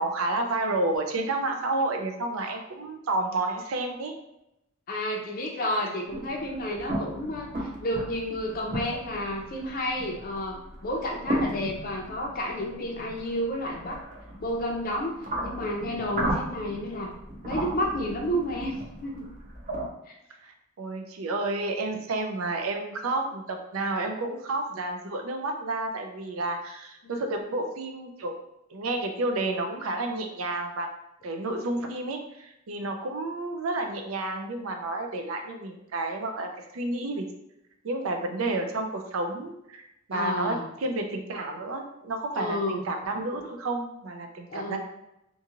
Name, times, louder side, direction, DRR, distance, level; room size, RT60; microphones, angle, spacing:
voice 1, 0.0-4.1 20.4-20.5 20.8-28.3 28.7-30.9 31.2-37.2 37.8-39.8 40.1-44.8, right 2 dB, 85° right, 4 dB, 0.5 m, -30 dB
voice 2, 4.9-14.0 14.4-17.1 17.4-18.7 19.0-19.3 27.0-27.1 40.1-40.7 42.4-42.8 44.5-44.8, left 1 dB, 45° left, 0 dB, 0.4 m, -31 dB
sound 1, 6.1-19.9, right 1 dB, 40° right, 0.5 m, -35 dB
2.6 x 2.4 x 2.9 m, 0.86 s
head